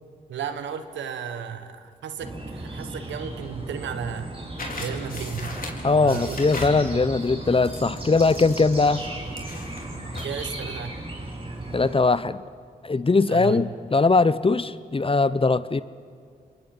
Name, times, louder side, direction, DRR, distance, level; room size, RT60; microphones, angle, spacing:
voice 1, 0.3-4.3 4.8-7.0 10.2-11.0 13.3-13.7, right 7 dB, 85° right, 10 dB, 1.3 m, -34 dB
sound 1, 2.2-12.0, right 2 dB, 30° right, 5.9 m, -36 dB
sound 2, 4.6-10.3, left 2 dB, 50° left, 4.5 m, -39 dB
voice 2, 5.8-9.0 11.7-12.4 12.8-15.8, left 3 dB, 30° left, 16 dB, 0.8 m, -20 dB
29.0 x 22.0 x 5.5 m, 2.2 s
supercardioid pair, 40°, 19 cm